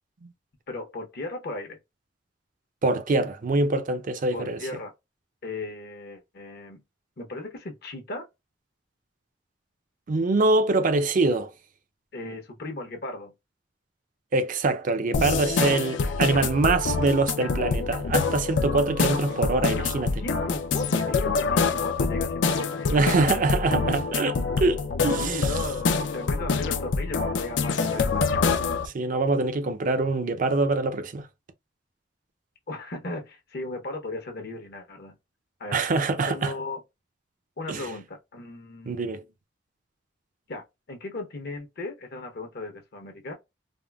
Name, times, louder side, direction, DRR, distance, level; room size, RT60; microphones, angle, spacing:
voice 1, 0.7-1.8 4.3-4.9 5.4-6.8 7.2-8.3 12.1-13.3 15.5-16.2 20.2-23.4 23.8-23.9 25.2-28.2 32.7-35.1 35.6-35.8 36.3-36.8 37.6-39.2 40.5-43.3, left 2 dB, 60° left, 0.8 m, -36 dB
voice 2, 2.8-4.6 10.1-11.5 14.3-20.2 22.9-25.4 28.8-31.3 35.7-36.5 37.7-37.9 38.9-39.2, right 3 dB, 45° right, 0.5 m, -24 dB
sound 1, 15.1-28.9, left 4 dB, 75° left, 0.4 m, -26 dB
3.5 x 2.0 x 2.2 m
head